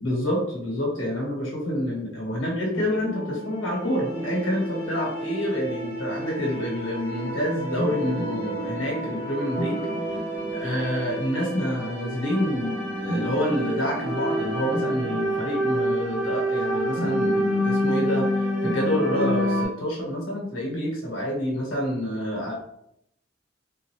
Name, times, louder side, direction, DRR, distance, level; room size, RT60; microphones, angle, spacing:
voice 1, 0.0-9.8 10.1-10.2 10.5-22.5, equal, 85° left, -2 dB, 1.4 m, -28 dB
sound 1, 2.7-19.6, equal, 55° right, 1.1 m, -28 dB
3.8 x 2.6 x 3.1 m, 0.77 s
head